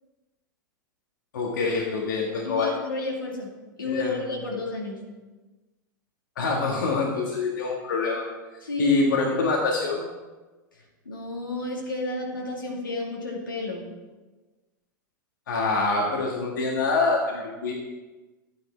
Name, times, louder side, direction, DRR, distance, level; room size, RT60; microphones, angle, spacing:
voice 1, 1.3-2.7 3.8-4.2 6.4-8.2 8.8-10.0 15.5-17.7, left 3 dB, 75° left, -1 dB, 1.9 m, -25 dB
voice 2, 2.4-3.5 3.8-5.0 8.6-9.0 11.0-13.9, left 2 dB, 90° left, -2 dB, 2.4 m, -31 dB
11.5 x 9.4 x 4.5 m, 1.2 s
hypercardioid pair, 95°, 11 cm